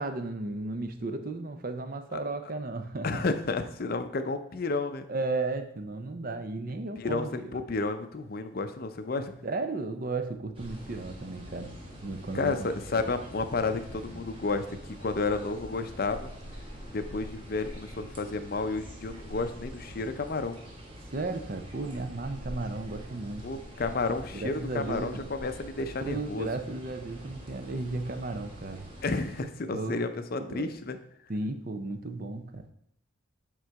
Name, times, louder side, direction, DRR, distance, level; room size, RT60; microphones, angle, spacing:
voice 1, 0.0-3.2 5.1-7.6 9.4-13.0 13.5-13.7 14.1-14.2 21.1-23.5 24.3-25.2 26.0-28.9 29.7-30.1 30.4-30.7 31.3-32.7, right 3 dB, 40° right, 7 dB, 0.6 m, -34 dB
voice 2, 3.0-5.1 7.0-9.3 12.3-16.3 16.9-20.6 23.4-26.5 29.0-31.0, left 3 dB, 45° left, 9 dB, 0.5 m, -31 dB
sound 1, 10.5-29.4, equal, 25° right, 1.4 m, -45 dB
7.9 x 3.8 x 4.6 m, 0.70 s
head